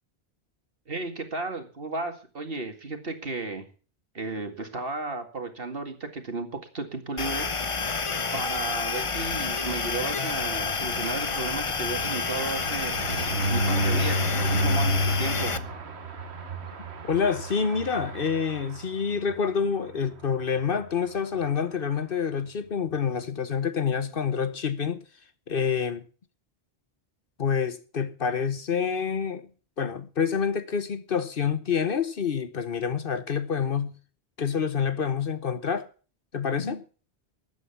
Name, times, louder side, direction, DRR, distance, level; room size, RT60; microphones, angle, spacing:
voice 1, 0.9-3.6 4.1-8.0 8.3-15.5, right 3 dB, 60° right, 2.3 m, -34 dB
sound 1, 7.2-15.6, left 4 dB, 35° left, 0.8 m, -29 dB
sound 2, 10.5-19.3 19.8-19.9 20.2-20.3 20.6-20.8, equal, 80° right, 1.6 m, -30 dB
voice 2, 17.1-25.0 25.5-26.0 27.4-29.5 29.8-33.9 34.4-35.9 36.3-36.8, left 6 dB, 60° left, 1.1 m, -27 dB
13.5 x 9.1 x 7.0 m
omnidirectional pair, 1.1 m